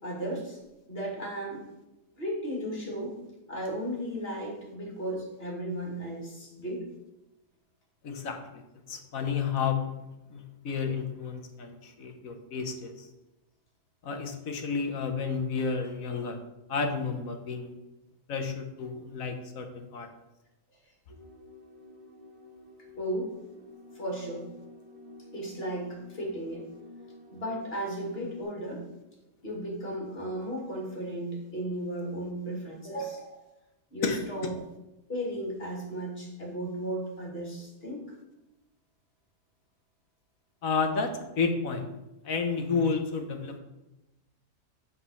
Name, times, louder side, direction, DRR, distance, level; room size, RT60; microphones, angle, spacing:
voice 1, 0.0-0.6 0.9-1.6 2.1-3.2 3.5-6.8 23.0-23.3 23.9-24.5 25.3-26.7 27.3-28.8 29.4-33.4 33.9-34.5 35.1-38.2, right 1 dB, 40° left, -2 dB, 2.8 m, -35 dB
voice 2, 8.0-8.6 8.9-9.9 10.3-13.1 14.0-16.4 16.7-17.7 18.3-20.1 34.0-34.5 40.6-41.9 42.2-43.6, left 5 dB, 65° left, 6 dB, 1.3 m, -31 dB
sound 1, 21.1-28.4, left 2 dB, 20° right, 2.2 m, -50 dB
7.8 x 4.3 x 6.9 m, 0.97 s
omnidirectional pair, 1.6 m